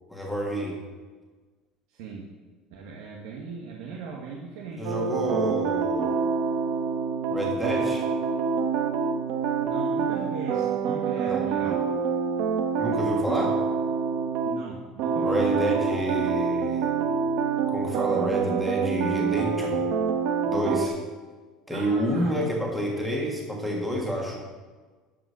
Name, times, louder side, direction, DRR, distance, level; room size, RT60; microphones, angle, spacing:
voice 1, 0.1-0.8 4.8-6.2 7.3-8.1 11.2-11.5 12.8-13.6 15.2-17.1 17.7-19.8 20.4-21.0 21.7-24.4, equal, ahead, -3 dB, 1.6 m, -29 dB
voice 2, 1.9-2.3 2.7-5.1 9.6-11.8 14.4-15.6 21.7-22.6, right 5 dB, 80° right, -1 dB, 1.3 m, -39 dB
sound 1, 4.8-14.6 15.0-20.9, right 6 dB, 60° right, 0.9 m, -26 dB
12.0 x 5.1 x 6.3 m, 1.4 s
cardioid pair, 165°, 0 cm